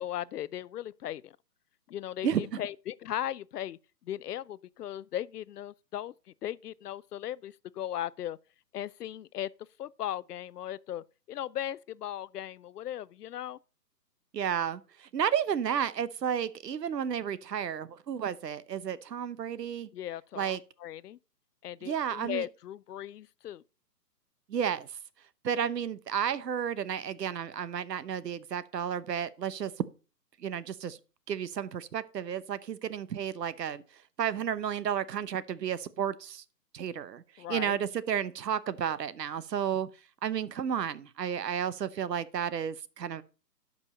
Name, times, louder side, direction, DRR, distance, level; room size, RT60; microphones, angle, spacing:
voice 1, 0.0-1.4 1.9-6.1 6.4-8.4 8.7-9.5 9.8-13.6 19.9-21.2 21.6-23.6 37.4-37.8, left 11 dB, 70° left, 0.5 m, -37 dB
voice 2, 2.2-2.6 14.3-19.9 20.4-20.6 21.8-22.4 24.5-24.9 25.4-29.8 30.4-31.0 31.3-33.8 34.2-36.4 36.7-39.9 40.2-43.2, right 8 dB, 75° right, 0.9 m, -32 dB
11.5 x 5.4 x 4.2 m
hypercardioid pair, 155°, 50 cm